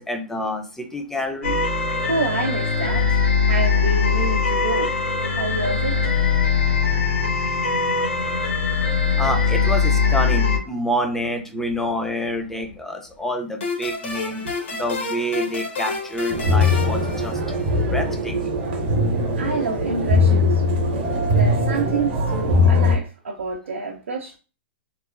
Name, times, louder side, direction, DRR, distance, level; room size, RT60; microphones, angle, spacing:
voice 1, 0.0-1.6 9.2-17.6 17.9-18.3, equal, 5° left, 0.5 m, -27 dB
sound 1, 1.4-10.6, left 5 dB, 85° left, 0.8 m, -21 dB
voice 2, 2.1-4.9 5.3-6.0 14.4-14.6 19.3-20.7 21.3-24.4, right 4 dB, 85° right, 0.5 m, -28 dB
sound 2, 13.6-18.0, left 3 dB, 65° left, 1.2 m, -30 dB
sound 3, 16.3-23.0, left 2 dB, 50° right, 0.7 m, -20 dB
2.9 x 2.0 x 2.4 m
hypercardioid pair, 125°, 6 cm